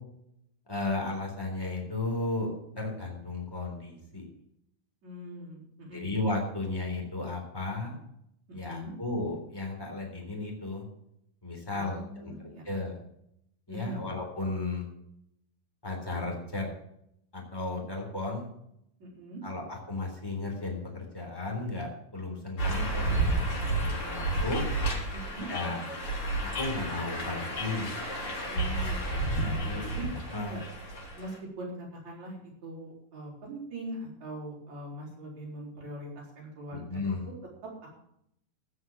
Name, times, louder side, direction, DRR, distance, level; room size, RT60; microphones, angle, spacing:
voice 1, 0.7-4.2 5.9-7.9 8.5-10.8 11.4-12.3 12.6-13.0 13.7-14.9 15.8-16.7 17.3-18.4 19.4-24.6 25.5-25.8 26.4-28.0 29.5-29.8 30.3-30.6 36.7-37.3, left 2 dB, 5° left, 0 dB, 3.3 m, -34 dB
voice 2, 5.0-6.0 8.6-8.9 11.7-12.6 13.7-14.0 19.0-19.4 25.1-25.5 28.5-30.1 30.5-30.6 31.1-37.0 37.2-37.3, right 1 dB, 50° right, -3 dB, 6.1 m, -42 dB
sound 1, 22.6-31.4, right 2 dB, 35° left, 4.6 m, -31 dB
16.0 x 6.4 x 7.5 m, 0.76 s
omnidirectional pair, 4.2 m